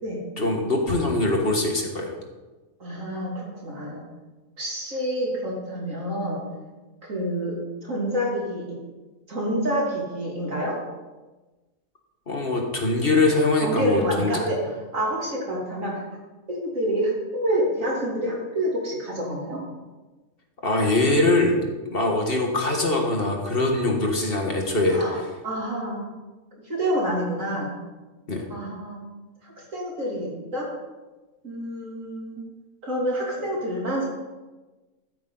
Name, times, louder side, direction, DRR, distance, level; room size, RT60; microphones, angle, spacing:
voice 1, 0.4-2.1 12.3-14.4 20.6-21.6 21.9-25.0 28.3-28.4, left 2 dB, 40° left, 1 dB, 1.8 m, -22 dB
voice 2, 2.8-4.0 4.6-6.4 7.0-7.6 7.8-8.6 9.3-10.7 13.6-14.6 14.9-16.0 16.5-19.6 24.9-26.0 26.7-27.7 28.5-29.0 29.4-30.7 31.4-32.4 32.8-34.1, equal, 65° right, -3 dB, 3.5 m, -28 dB
13.5 x 8.7 x 4.0 m, 1.2 s
omnidirectional pair, 1.5 m